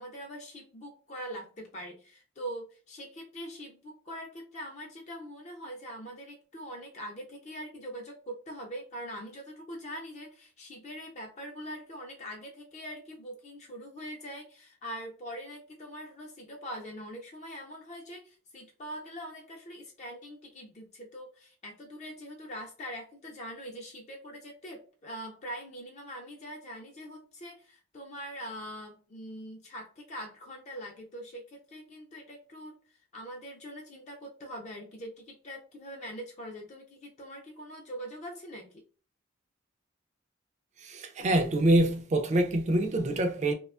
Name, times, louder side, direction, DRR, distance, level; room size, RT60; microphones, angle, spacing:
voice 1, 0.0-32.8 33.1-38.8, equal, 35° left, 0.4 m, -43 dB
voice 2, 40.8-43.5, right 1 dB, 35° right, 0.3 m, -25 dB
2.7 x 2.2 x 2.3 m
head